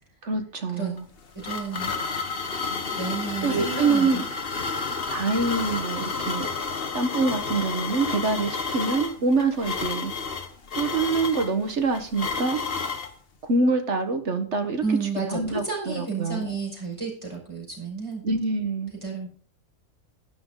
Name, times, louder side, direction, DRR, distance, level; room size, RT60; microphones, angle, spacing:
voice 1, 0.2-1.1 3.4-4.2 5.1-6.5 6.9-10.1 10.7-12.6 13.4-14.8 15.3-16.5 18.2-18.9, right 3 dB, 55° right, 7 dB, 1.6 m, -25 dB
sound 1, 1.0-13.1, left 4 dB, 45° left, 1.3 m, -31 dB
voice 2, 1.3-1.9 2.9-4.2 14.8-18.2 19.0-19.3, right 4 dB, 20° right, -2 dB, 5.3 m, -31 dB
12.0 x 10.5 x 3.9 m, 0.43 s
omnidirectional pair, 1.5 m